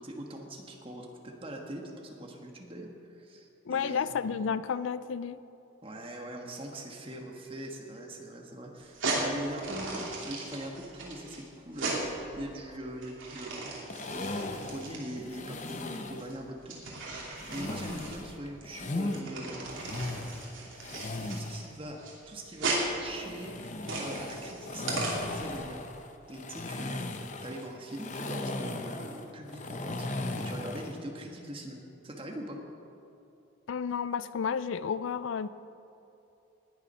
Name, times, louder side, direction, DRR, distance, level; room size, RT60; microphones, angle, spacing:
voice 1, 0.0-2.9 3.2-4.2 5.8-12.0 12.4-13.7 14.1-16.8 17.5-19.9 20.7-22.0 22.3-25.1 25.3-25.8 26.3-27.0 27.4-31.8 32.0-32.6, right 1 dB, 25° right, 1 dB, 1.4 m, -42 dB
voice 2, 3.7-5.4 33.7-35.5, left 6 dB, 75° left, 15 dB, 0.4 m, -31 dB
sound 1, 8.8-25.6, right 2 dB, 70° right, 2.8 m, -37 dB
sound 2, 13.9-16.3 17.4-19.2 19.7-21.7 23.1-31.0, left 2 dB, 35° left, 0.7 m, -37 dB
19.5 x 7.2 x 5.5 m, 2.8 s
head